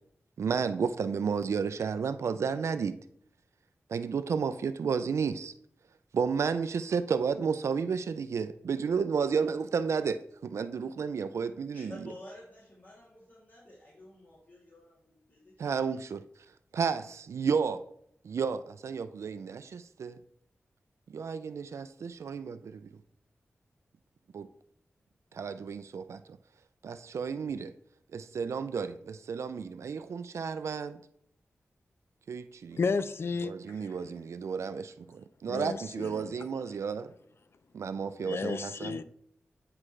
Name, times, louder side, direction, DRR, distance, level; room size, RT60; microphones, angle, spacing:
voice 1, 0.4-3.0 3.9-5.5 6.1-11.9 15.6-16.2 16.7-17.8 18.2-20.2 21.1-22.8 24.3-24.5 25.3-26.2 26.8-27.7 28.1-31.0 32.3-32.8 33.4-37.1 37.7-39.0, right 6 dB, 80° right, 0.4 m, -32 dB
voice 2, 11.7-16.0, left 1 dB, 40° left, 2.7 m, -51 dB
voice 3, 32.7-33.8 35.5-36.3 38.2-39.0, left 4 dB, 60° left, 0.5 m, -32 dB
9.8 x 4.8 x 3.2 m
wide cardioid pair, 105°, 5 cm